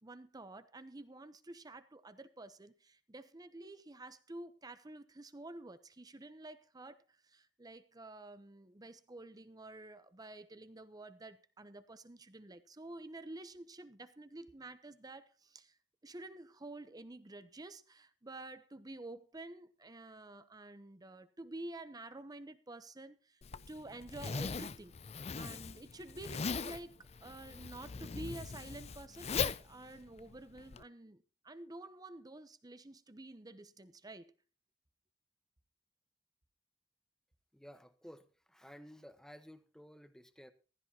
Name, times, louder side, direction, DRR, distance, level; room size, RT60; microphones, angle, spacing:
voice 1, 0.0-15.8 16.0-23.4 23.7-25.0 25.3-34.3, right 2 dB, 20° right, 0.8 m, -50 dB
Zipper (clothing), 23.4-30.8, left 5 dB, 35° left, 0.5 m, -40 dB
voice 2, 37.5-40.5, equal, 5° left, 1.1 m, -55 dB
15.0 x 13.5 x 2.9 m
head